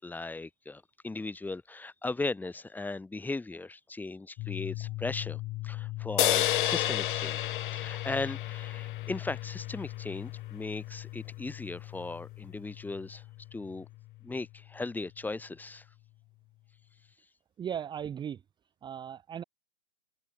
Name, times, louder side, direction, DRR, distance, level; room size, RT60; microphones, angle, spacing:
voice 1, 0.0-13.2 13.5-13.9 14.2-15.8, left 3 dB, 5° left, 5.1 m, -37 dB
sound 1, 4.4-16.2, left 19 dB, 25° left, 6.4 m, -41 dB
sound 2, 6.2-9.7, left 13 dB, 40° left, 0.8 m, -30 dB
voice 2, 17.6-18.4 18.8-19.4, right 9 dB, 10° right, 2.0 m, -37 dB
hypercardioid pair, 145°, 39 cm